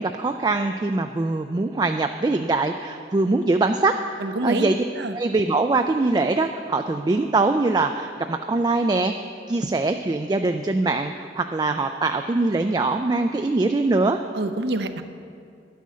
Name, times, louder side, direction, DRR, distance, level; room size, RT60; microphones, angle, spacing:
voice 1, 0.0-4.8 5.1-9.1 9.5-14.2, right 3 dB, 25° right, 6 dB, 0.3 m, -23 dB
voice 2, 4.2-4.7 4.9-5.2 14.3-15.0, right 2 dB, 65° right, 8 dB, 0.6 m, -26 dB
10.5 x 9.2 x 6.3 m, 2.5 s
head